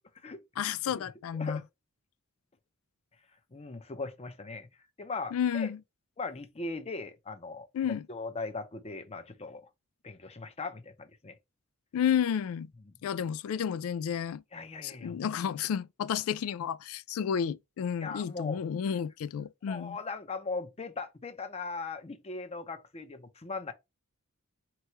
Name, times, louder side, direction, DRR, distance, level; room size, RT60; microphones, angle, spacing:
voice 1, 0.6-1.6 5.3-5.8 7.7-8.0 11.9-12.7 13.0-14.4 14.8-20.0, left 8 dB, 70° left, 0.3 m, -31 dB
voice 2, 3.5-4.7 5.0-5.7 6.2-7.7 8.1-9.7 10.0-11.4 12.8-13.0 14.5-15.2 18.0-18.6 19.7-23.7, left 3 dB, 30° left, 0.6 m, -39 dB
4.6 x 3.0 x 2.9 m
head